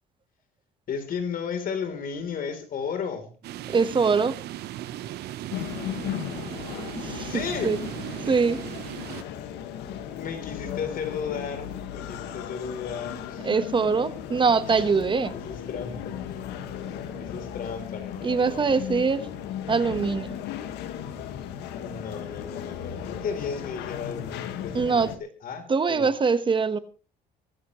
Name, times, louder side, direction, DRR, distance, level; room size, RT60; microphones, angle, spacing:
voice 1, 0.9-3.3 7.0-7.8 9.7-13.5 14.7-16.5 17.1-18.8 21.8-26.1, left 6 dB, 55° left, 7 dB, 3.7 m, -34 dB
sound 1, 3.4-9.2, right 13 dB, 75° right, 1.0 m, -37 dB
voice 2, 3.7-4.4 7.0-7.8 8.2-8.6 13.4-15.3 18.2-19.2 19.7-20.3 24.7-25.1 25.7-26.8, right 5 dB, 30° right, 12 dB, 1.3 m, -23 dB
sound 2, 5.5-25.2, left 9 dB, 85° left, 1.8 m, -36 dB
23.0 x 13.5 x 3.2 m, 0.35 s
cardioid pair, 110°, 17 cm